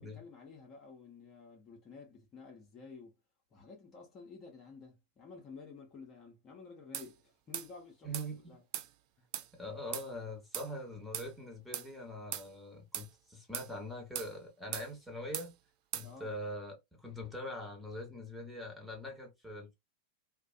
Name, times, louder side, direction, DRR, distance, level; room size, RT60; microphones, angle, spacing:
voice 1, 0.0-3.2 3.5-8.6 9.2-9.3 16.0-16.3, left 4 dB, 30° left, 0.8 m, -52 dB
sound 1, 6.9-7.1 7.5-7.7 8.1-8.3 8.7-8.9 9.3-9.5 9.9-10.1 10.5-10.7 11.1-11.3 11.7-11.9 12.3-12.5 12.9-13.1 13.5-13.7 14.2-14.3 14.7-14.9 15.3-15.5 15.9-16.1, right 12 dB, 45° right, 0.3 m, -39 dB
voice 2, 8.0-8.6 9.5-15.6 15.9-19.7, equal, ahead, 1.1 m, -43 dB
2.4 x 2.2 x 2.4 m
figure-of-eight pair, 90°, 0 cm